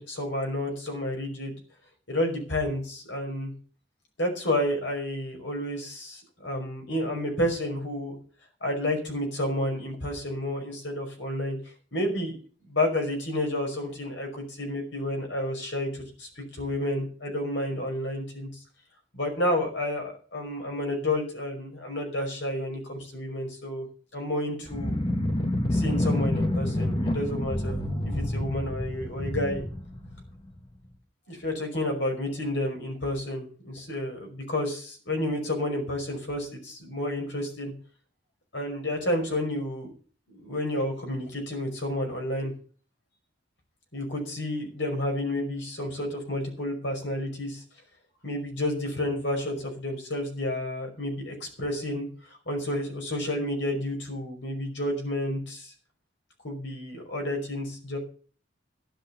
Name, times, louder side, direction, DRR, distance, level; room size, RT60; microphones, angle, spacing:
voice 1, 0.0-1.5 2.1-3.5 4.2-8.1 8.6-11.6 11.9-12.4 12.7-18.5 19.1-23.9 24.1-25.0 25.7-29.6 31.3-37.7 38.5-39.9 40.3-42.5 43.9-47.6 48.2-52.1 52.5-55.7 56.4-58.0, left 1 dB, 70° left, 2 dB, 5.4 m, -30 dB
My Stomach's Angriest Message of Hunger, 24.7-30.6, left 1 dB, 25° left, 1.6 m, -28 dB
13.0 x 11.0 x 5.7 m, 0.41 s
head